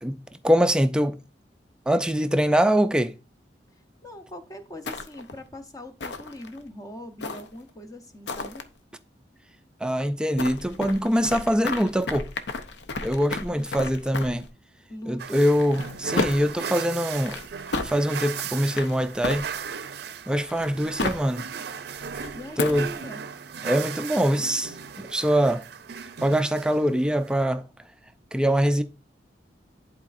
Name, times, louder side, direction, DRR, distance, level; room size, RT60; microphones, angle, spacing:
voice 1, 0.4-1.2 1.9-3.1 9.8-12.3 13.0-14.5 15.1-17.4 17.8-19.5 20.3-21.5 22.6-22.9 23.6-25.7 26.2-27.7 28.3-28.8, equal, 5° right, 0.3 m, -23 dB
voice 2, 4.0-8.7 13.5-13.7 14.9-15.5 22.3-23.2, left 1 dB, 20° left, 0.8 m, -42 dB
sound 1, 4.9-5.4 6.0-6.6 7.2-7.7 8.3-8.6 10.4-14.5 15.5-16.6 17.1-17.9 18.7-19.8 20.4-21.3 22.0-22.9, left 3 dB, 75° left, 0.6 m, -33 dB
sound 2, 15.2-27.4, right 7 dB, 65° right, 0.5 m, -37 dB
11.0 x 4.1 x 2.5 m
head